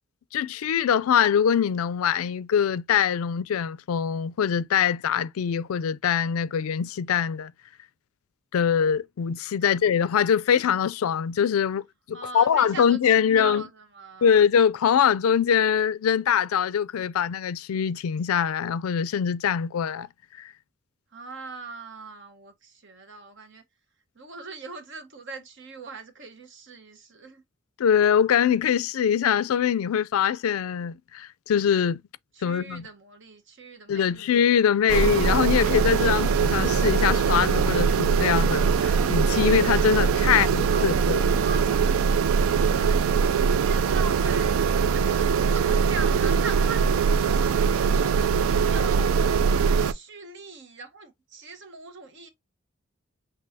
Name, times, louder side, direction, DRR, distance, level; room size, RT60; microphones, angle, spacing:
voice 1, 0.3-7.5 8.5-13.6 14.2-20.1 20.4-20.5 27.8-32.0 32.4-32.9 33.9-41.4, left 8 dB, 90° left, 0.4 m, -23 dB
voice 2, 12.1-14.3 21.1-23.6 24.1-27.4 32.3-34.3 40.2-40.9 41.4-49.2 49.8-52.3, right 4 dB, 60° right, 1.1 m, -41 dB
sound 1, 34.9-49.9, right 6 dB, 80° right, 0.4 m, -22 dB
sound 2, 38.6-44.2, left 2 dB, 10° left, 0.8 m, -45 dB
6.1 x 2.6 x 2.7 m
head